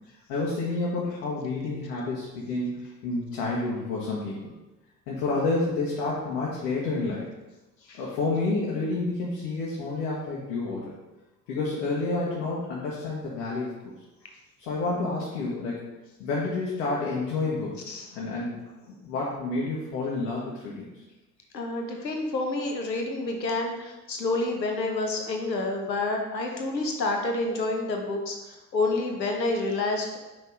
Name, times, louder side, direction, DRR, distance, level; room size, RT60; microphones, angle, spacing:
voice 1, 0.3-4.5 5.1-7.3 8.0-10.9 11.5-13.8 14.6-15.8 16.2-17.8 18.1-18.6 19.0-20.9, left 3 dB, 60° left, -5 dB, 1.6 m, -29 dB
voice 2, 21.5-30.2, left 2 dB, 85° left, 2 dB, 1.0 m, -28 dB
5.9 x 5.4 x 3.8 m, 1.1 s
figure-of-eight pair, 65°, 49 cm